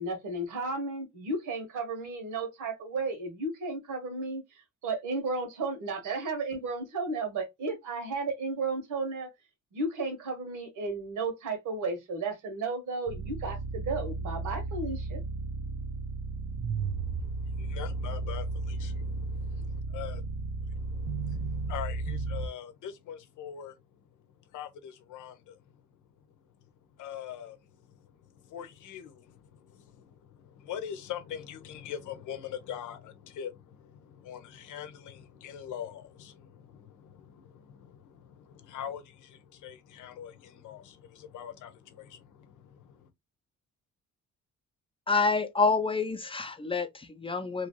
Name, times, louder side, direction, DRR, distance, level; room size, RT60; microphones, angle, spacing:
voice 1, 0.0-4.4 4.8-9.3 9.7-15.2, right 3 dB, 80° right, 1.5 m, -33 dB
sound 1, 13.1-22.5, right 3 dB, 65° right, 0.5 m, -34 dB
voice 2, 16.8-20.2 20.7-25.9 26.2-26.5 26.9-43.1, left 9 dB, 80° left, 0.8 m, -43 dB
voice 3, 45.1-47.7, left 4 dB, 20° left, 0.6 m, -27 dB
3.0 x 2.5 x 3.0 m
cardioid pair, 90°, 30 cm